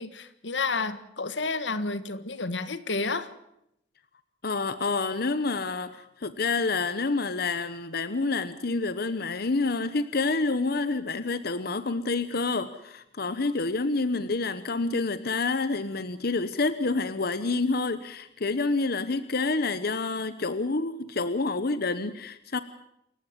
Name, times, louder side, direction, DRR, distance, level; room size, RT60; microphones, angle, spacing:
voice 1, 0.0-3.3, left 3 dB, 90° left, 13 dB, 1.6 m, -30 dB
voice 2, 4.4-22.6, left 3 dB, 60° left, 13 dB, 1.0 m, -28 dB
28.0 x 15.0 x 7.5 m, 0.78 s
head